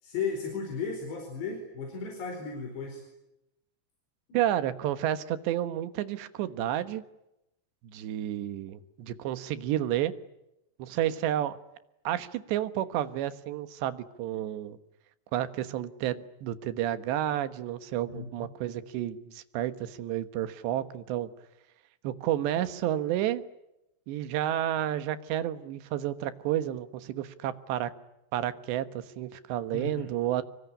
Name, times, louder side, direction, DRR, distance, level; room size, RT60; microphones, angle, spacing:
voice 1, 0.0-3.0 4.3-4.4 18.1-18.5 29.7-30.1, left 5 dB, 80° left, 2 dB, 6.9 m, -35 dB
voice 2, 4.3-7.0 7.8-10.1 10.8-11.6 12.1-14.8 15.3-21.3 22.0-23.4 24.1-27.9 28.3-30.4, right 12 dB, 85° right, 12 dB, 3.5 m, -31 dB
25.5 x 23.5 x 9.9 m, 0.89 s
omnidirectional pair, 4.9 m